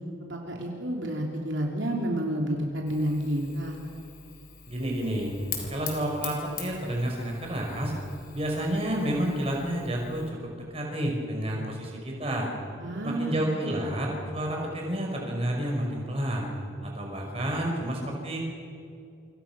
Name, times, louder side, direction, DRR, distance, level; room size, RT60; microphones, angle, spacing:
voice 1, 0.2-3.8 12.8-13.4, right 1 dB, 70° right, 0 dB, 3.1 m, -30 dB
Fire, 2.9-10.3, left 7 dB, 50° left, 4.2 m, -43 dB
voice 2, 4.7-5.3 5.7-7.9 8.3-10.2 10.7-12.5 13.0-16.5 16.8-18.4, right 1 dB, 30° right, 0 dB, 5.5 m, -30 dB
29.5 x 25.5 x 6.1 m, 2.5 s
head